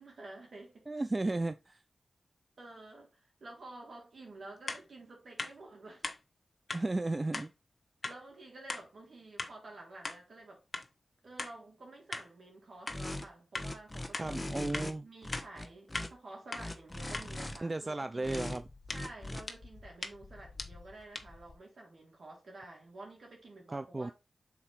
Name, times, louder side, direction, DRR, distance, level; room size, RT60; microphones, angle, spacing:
voice 1, 0.0-0.9 2.6-6.1 8.0-10.6 11.2-14.4 15.0-18.5 18.9-24.1, right 2 dB, 70° right, 3.4 m, -50 dB
voice 2, 0.9-1.8 6.7-7.5 14.2-15.1 17.6-18.6 23.7-24.1, right 2 dB, 35° right, 0.4 m, -34 dB
sound 1, 4.7-4.8 5.4-5.5 6.0-6.2 6.7-6.8 7.3-7.5 8.0-8.2 8.7-8.8 9.4-9.5 10.0-10.2 10.7-10.9 11.4-11.5 12.1-12.3 12.9-13.0 13.5-13.7 14.1-14.3 14.7-14.9 15.3-15.5 15.9-16.1 16.5-16.7 17.1-17.3 18.3-21.6, left 3 dB, 50° left, 1.1 m, -40 dB
sound 2, 12.9-13.2 13.5-14.9 15.2-16.1 16.5-17.6 18.2-18.6 18.9-19.4, left 1 dB, 25° left, 1.2 m, -40 dB
5.9 x 4.3 x 4.1 m
cardioid pair, 45°, 0 cm